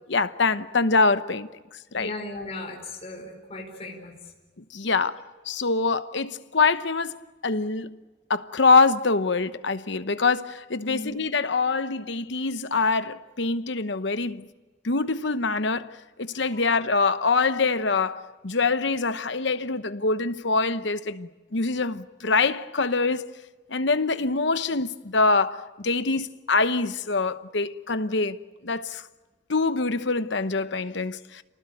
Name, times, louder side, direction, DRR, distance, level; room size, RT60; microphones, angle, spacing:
voice 1, 0.1-1.5 1.9-2.1 4.7-7.2 7.4-8.0 8.3-14.5 14.8-15.9 16.2-23.3 23.7-28.4 28.6-29.0 29.5-31.4, left 3 dB, 60° left, 1.0 m, -24 dB
voice 2, 1.9-4.3 10.8-11.1 16.5-16.6, left 2 dB, 30° left, 4.9 m, -37 dB
29.0 x 19.5 x 9.1 m
head